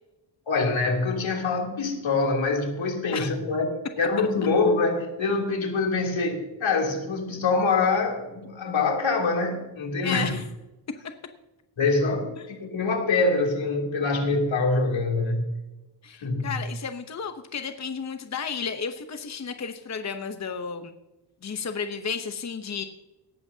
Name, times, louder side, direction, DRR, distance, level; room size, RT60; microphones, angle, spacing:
voice 1, 0.5-3.6 4.0-10.3 11.8-15.4 16.2-16.5, left 3 dB, 85° left, 0 dB, 3.2 m, -25 dB
voice 2, 10.0-10.4 12.4-12.5 16.0-20.9 21.4-22.8, left 6 dB, 35° left, 7 dB, 0.9 m, -33 dB
18.0 x 14.5 x 2.8 m, 1.0 s
wide cardioid pair, 110°, 45 cm